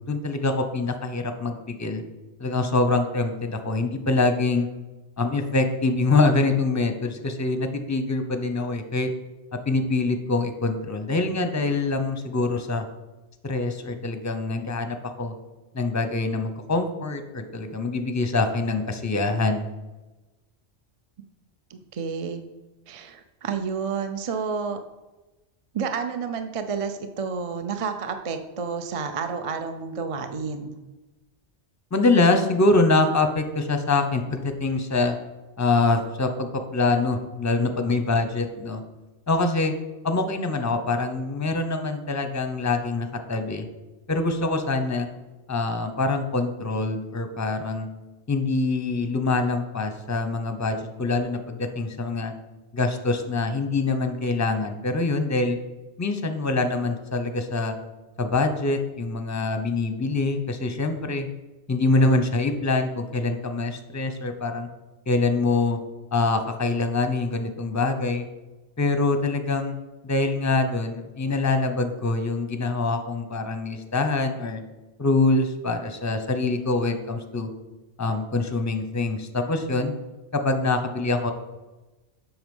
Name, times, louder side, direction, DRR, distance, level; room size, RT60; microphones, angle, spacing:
voice 1, 0.1-2.0 2.4-4.7 5.2-9.1 9.7-12.8 13.4-15.3 15.7-19.7 31.9-35.2 35.6-38.8 39.3-39.7 40.0-43.6 44.1-45.1 45.5-47.9 48.3-52.3 52.7-55.6 56.0-57.7 58.2-61.3 61.7-64.7 65.1-65.8 66.1-68.2 68.8-69.8 70.0-74.6 75.0-77.5 78.0-79.9 80.3-81.3, left 3 dB, 20° left, 7 dB, 0.6 m, -24 dB
voice 2, 21.7-22.4 22.9-24.8 25.7-30.8, right 5 dB, 40° right, 7 dB, 0.5 m, -30 dB
7.8 x 6.1 x 5.3 m, 1.1 s
omnidirectional pair, 1.2 m